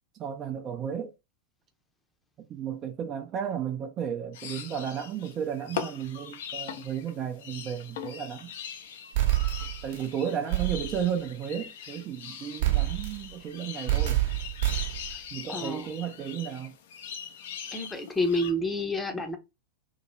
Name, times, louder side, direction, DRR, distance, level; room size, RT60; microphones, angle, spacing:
voice 1, 0.2-1.1 2.5-8.5 9.8-14.2 15.3-16.7, right 8 dB, 30° right, 0.5 m, -33 dB
sound 1, 4.3-18.5, left 8 dB, 55° left, 0.6 m, -41 dB
sound 2, 9.1-10.1 10.5-11.0 12.6-13.3 13.9-15.2, right 15 dB, 55° right, 1.0 m, -27 dB
voice 2, 15.5-16.0 17.7-19.4, left 1 dB, 10° left, 0.7 m, -29 dB
2.9 x 2.9 x 2.7 m
figure-of-eight pair, 90°, 0 cm